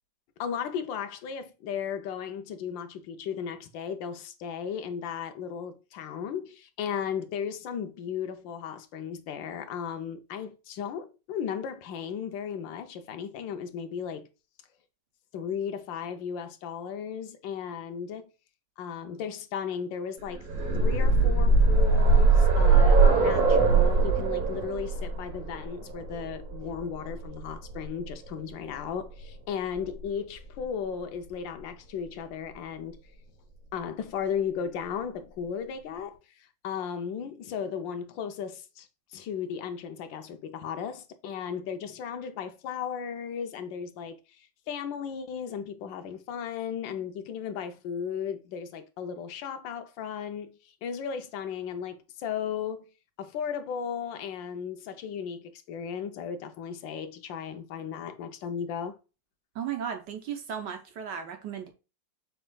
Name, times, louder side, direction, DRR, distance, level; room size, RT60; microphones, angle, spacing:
voice 1, 0.4-14.3 15.3-18.3 18.8-20.5 20.7-33.0 33.7-52.9 53.2-59.0, left 7 dB, 90° left, 1.4 m, -35 dB
sound 1, 20.3-28.1 29.2-29.3 29.7-29.8, right 3 dB, 90° right, 2.1 m, -22 dB
voice 2, 59.5-61.7, right 8 dB, 75° right, 1.5 m, -35 dB
6.4 x 3.5 x 2.3 m
omnidirectional pair, 2.0 m